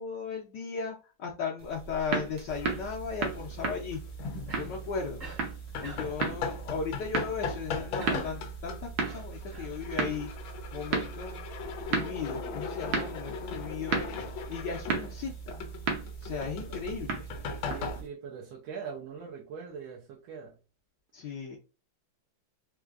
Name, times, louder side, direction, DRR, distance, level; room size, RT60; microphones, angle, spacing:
voice 1, 0.0-4.0 4.6-5.3 5.8-10.3 10.7-11.4 11.9-14.0 14.5-15.6 16.2-17.3 21.1-21.6, left 5 dB, 70° left, 1.2 m, -36 dB
sound 1, 1.6-18.1, right 4 dB, 60° right, 1.2 m, -36 dB
sound 2, 2.5-18.0, left 2 dB, 90° left, 1.4 m, -39 dB
Cough, 4.5-4.8 5.2-5.5 5.8-6.2 8.0-8.4 9.0-9.8, right 2 dB, 40° right, 1.0 m, -44 dB
voice 2, 17.7-20.6, right 6 dB, 80° right, 1.5 m, -42 dB
4.4 x 2.5 x 2.4 m
omnidirectional pair, 2.2 m